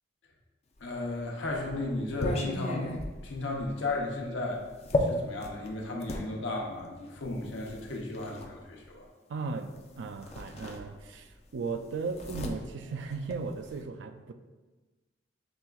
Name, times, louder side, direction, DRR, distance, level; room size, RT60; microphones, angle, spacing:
voice 1, 0.8-4.6 5.0-9.1, left 2 dB, 90° left, -1 dB, 0.8 m, -34 dB
sound 1, 0.9-6.3 7.2-8.5 9.7-9.9 10.2-11.3 11.6-13.8, left 2 dB, 35° left, 0.4 m, -35 dB
voice 2, 9.3-14.3, right 4 dB, 75° right, 7 dB, 0.3 m, -36 dB
6.1 x 3.4 x 2.3 m, 1.2 s
head